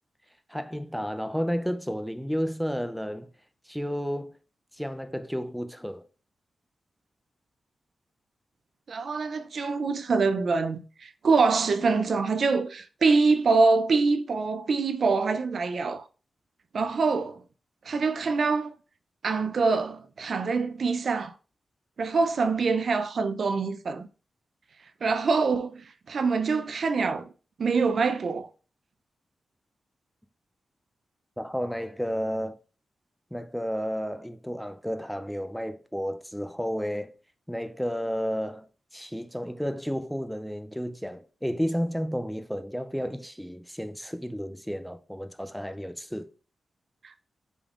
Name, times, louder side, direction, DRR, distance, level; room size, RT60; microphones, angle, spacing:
voice 1, 0.5-3.3 3.7-4.4 4.8-6.0 31.4-32.6 33.3-37.1 37.5-38.7 38.9-46.3, equal, ahead, 0.4 m, -32 dB
voice 2, 8.9-16.0 16.7-17.4 17.9-18.7 19.2-21.3 22.0-24.1 25.0-25.8 26.1-27.3 27.6-28.5, right 4 dB, 60° right, 0.4 m, -25 dB
5.1 x 3.5 x 2.4 m
wide cardioid pair, 105°, 0 cm